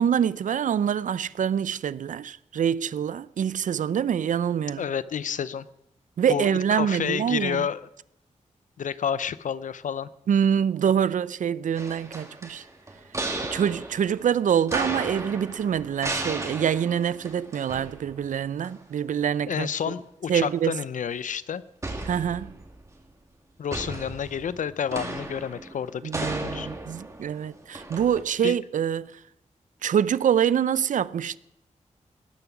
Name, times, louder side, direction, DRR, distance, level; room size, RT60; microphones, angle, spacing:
voice 1, 0.0-4.9 6.2-7.7 10.3-12.6 13.5-19.7 20.3-20.8 22.0-22.5 26.0-29.1 29.8-31.4, right 8 dB, 90° right, 0.5 m, -25 dB
voice 2, 4.8-5.7 6.3-7.8 8.8-10.1 19.5-21.6 23.6-26.7 28.4-28.6, left 8 dB, 85° left, 0.6 m, -30 dB
sound 1, 11.8-18.4 18.6-18.7 21.8-22.9 23.7-28.2, right 2 dB, 25° right, 2.0 m, -35 dB
19.0 x 11.0 x 5.9 m
wide cardioid pair, 160°, 13 cm